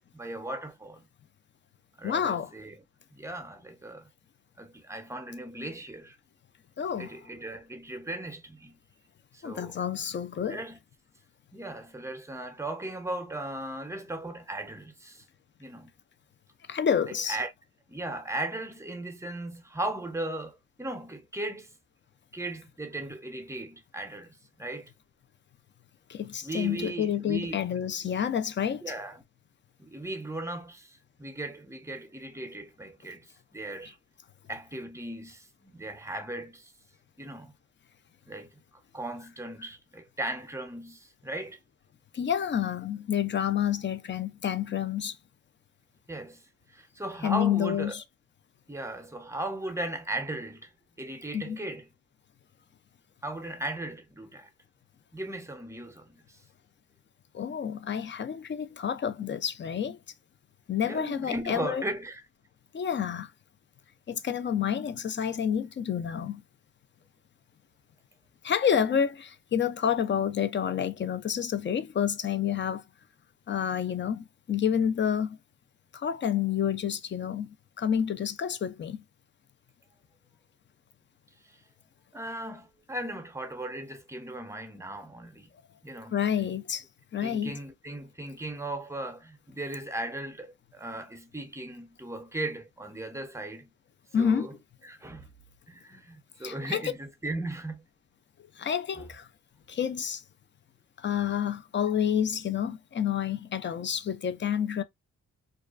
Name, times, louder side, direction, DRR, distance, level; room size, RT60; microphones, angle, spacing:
voice 1, 0.1-1.1 2.0-2.8 3.1-4.1 4.6-6.2 7.0-8.8 9.3-9.8 10.5-10.8 11.5-15.2 15.6-15.9 17.1-17.5 17.9-21.7 22.3-24.9 26.4-27.6 28.8-29.2 29.8-33.2 33.5-34.0 34.5-36.7 37.2-37.5 38.3-38.5 38.9-41.6 46.1-46.4 46.7-47.9 48.7-50.7 51.0-51.9 53.2-54.5 55.1-56.1 60.8-62.2 82.1-85.5 85.8-86.2 87.2-93.7 94.2-94.5 94.8-95.3 95.7-97.8 99.0-99.1, right 2 dB, 10° right, 0.6 m, -37 dB
voice 2, 2.0-2.5 6.8-7.1 9.4-10.6 16.7-17.4 26.1-28.9 42.1-45.2 47.2-48.0 51.3-51.6 57.3-60.0 60.7-61.8 62.7-63.3 64.1-66.4 68.4-72.8 73.5-75.4 75.9-79.0 86.1-86.8 87.1-87.6 94.1-94.5 96.4-96.8 98.6-99.3 99.7-100.2 101.0-104.8, left 8 dB, 40° left, 0.4 m, -29 dB
2.3 x 2.2 x 2.4 m
cardioid pair, 70°, 29 cm